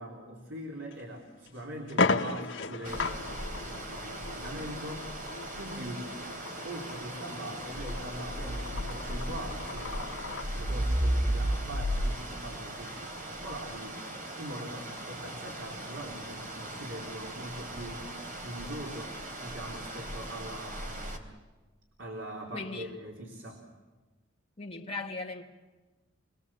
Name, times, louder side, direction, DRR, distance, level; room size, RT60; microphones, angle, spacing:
voice 1, 0.0-5.1 5.6-6.1 6.6-10.2 10.5-14.0 14.4-21.3 22.0-23.6, right 1 dB, 85° right, 3.7 m, -42 dB
sound 1, 0.9-1.0 1.5-1.6 1.9-10.5, left 3 dB, 80° left, 1.5 m, -35 dB
sound 2, 2.8-21.2, right 1 dB, 45° right, 3.7 m, -36 dB
voice 2, 22.5-22.9 24.6-25.4, left 3 dB, 30° left, 2.3 m, -38 dB
28.5 x 20.5 x 7.5 m
head